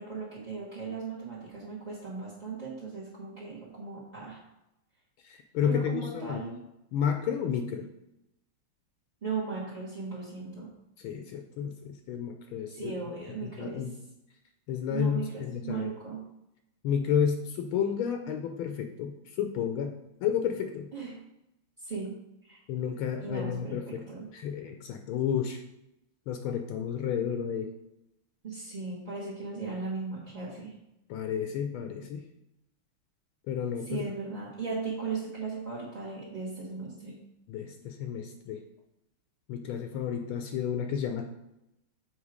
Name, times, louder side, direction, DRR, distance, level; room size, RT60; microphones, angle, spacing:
voice 1, 0.0-4.4 5.6-6.6 9.2-10.7 12.7-13.8 14.9-16.2 20.9-21.2 21.8-22.1 22.4-22.6 23.2-24.3 28.4-30.7 33.9-37.2, right 4 dB, 25° right, -7 dB, 1.2 m, -37 dB
voice 2, 5.2-6.4 6.9-7.9 11.0-12.9 13.4-14.0 14.7-15.9 16.8-20.9 22.7-24.1 24.3-25.6 26.3-27.7 31.1-32.2 33.5-34.0 37.5-38.6 39.5-41.3, left 8 dB, 75° left, 5 dB, 1.4 m, -31 dB
7.2 x 4.2 x 4.9 m, 0.87 s
omnidirectional pair, 2.4 m